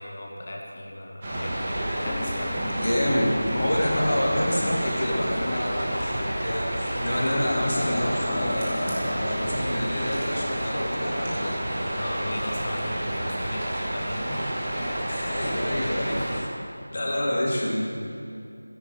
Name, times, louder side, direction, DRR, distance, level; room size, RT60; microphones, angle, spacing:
voice 1, 0.0-1.7 2.0-2.7 11.9-14.4 16.2-16.3 16.9-17.4, left 1 dB, 25° left, 0 dB, 1.1 m, -37 dB
sound 1, 1.2-16.4, right 1 dB, 20° right, 1.1 m, -30 dB
sound 2, 2.0-5.8 7.3-10.9, left 3 dB, 10° left, 0.3 m, -38 dB
voice 2, 2.7-11.5 15.1-16.5 16.9-17.9, left 1 dB, 50° left, -3 dB, 2.0 m, -27 dB
10.5 x 9.9 x 4.9 m, 2.4 s
figure-of-eight pair, 180°, 0 cm